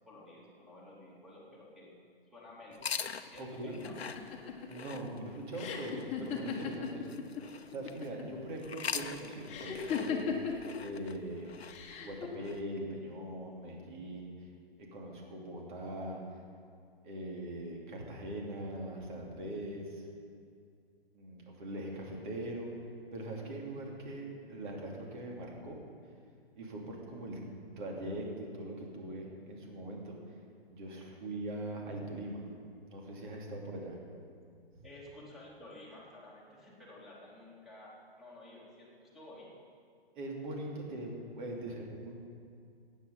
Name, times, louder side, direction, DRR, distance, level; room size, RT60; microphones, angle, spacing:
voice 1, 0.1-1.9 2.3-2.8 3.3-4.0 34.8-39.6 41.6-41.7, left 1 dB, ahead, -6 dB, 2.8 m, -52 dB
sound 1, 2.7-8.1 8.6-12.6, left 6 dB, 85° left, 0.7 m, -43 dB
voice 2, 3.4-3.7 4.6-7.1 7.5-11.5 12.0-14.5 14.8-16.2 17.0-20.1 21.1-22.7 23.1-25.8 26.5-27.4 27.8-30.2 30.7-32.4 32.9-34.0 34.7-34.9 40.2-42.1, right 1 dB, 50° right, -1 dB, 2.9 m, -41 dB
sound 2, 3.8-7.4 7.7-8.4 9.5-10.7 11.7-12.3, left 7 dB, 20° left, 1.4 m, -37 dB
14.5 x 9.3 x 5.5 m, 2.3 s
figure-of-eight pair, 125°, 31 cm